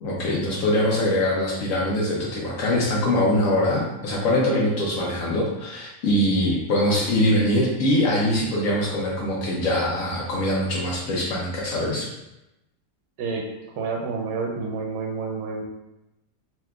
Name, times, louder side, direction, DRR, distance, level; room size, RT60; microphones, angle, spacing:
voice 1, 0.0-12.1, left 1 dB, 85° left, -4 dB, 1.0 m, -23 dB
voice 2, 13.8-15.6, right 4 dB, 70° right, 2 dB, 0.8 m, -29 dB
3.5 x 2.8 x 2.2 m, 0.92 s
omnidirectional pair, 1.4 m